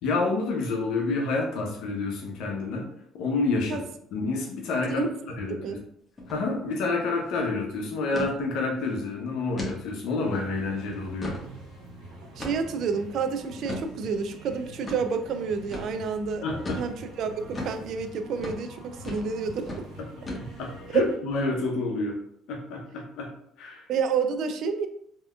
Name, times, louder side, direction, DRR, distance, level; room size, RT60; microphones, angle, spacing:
voice 1, 0.0-2.9 3.1-3.8 4.1-5.0 5.4-5.8 6.3-11.3 16.4-16.8 20.4-22.2 22.5-23.3 23.6-23.9, left 3 dB, 75° left, 1 dB, 0.7 m, -28 dB
sound 1, 6.2-6.4 6.7-6.8 7.2-7.4 8.1-8.3 8.8-8.9 9.6-9.8 10.3-10.4 10.9-11.5 12.4-12.8 13.6-13.9 14.8-15.0 15.7-15.9 16.6-16.9 17.5-17.8 18.4-18.6 19.0-19.3 19.6-19.8 20.3-20.7, left 1 dB, 25° left, 1.1 m, -35 dB
sound 2, 10.2-21.2, right 1 dB, 85° right, 1.4 m, -45 dB
voice 2, 12.4-16.5 16.7-19.9 20.9-21.0 23.9-24.9, right 5 dB, 65° right, 8 dB, 0.4 m, -29 dB
3.4 x 2.8 x 2.3 m, 0.70 s
supercardioid pair, 75°, 0 cm